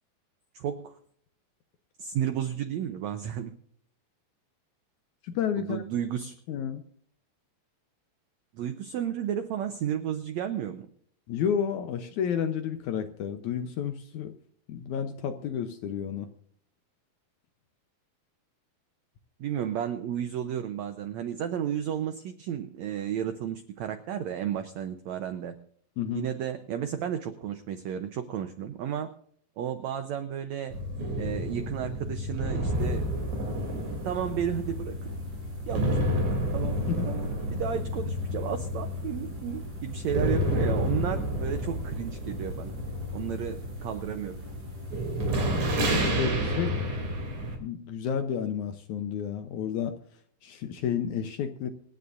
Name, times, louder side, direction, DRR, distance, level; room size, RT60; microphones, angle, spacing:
voice 1, 0.5-0.9 2.0-3.5 5.6-6.3 8.5-10.9 19.4-25.6 26.1-29.1 29.6-30.7 31.2-33.0 34.0-35.0 35.7-36.3 36.5-36.8 37.1-42.8 43.1-44.4, right 9 dB, 85° right, 9 dB, 1.6 m, -33 dB
voice 2, 5.2-5.8 6.5-6.8 11.3-14.3 14.7-16.3 26.0-26.3 36.9-37.2 46.0-46.8 47.6-50.0 50.4-51.7, left 8 dB, 75° left, 8 dB, 1.9 m, -31 dB
sound 1, 30.7-47.6, equal, 50° right, 4.1 m, -30 dB
sound 2, 32.7-45.9, right 2 dB, 30° right, 4.9 m, -48 dB
26.5 x 9.6 x 2.6 m, 0.62 s
omnidirectional pair, 4.2 m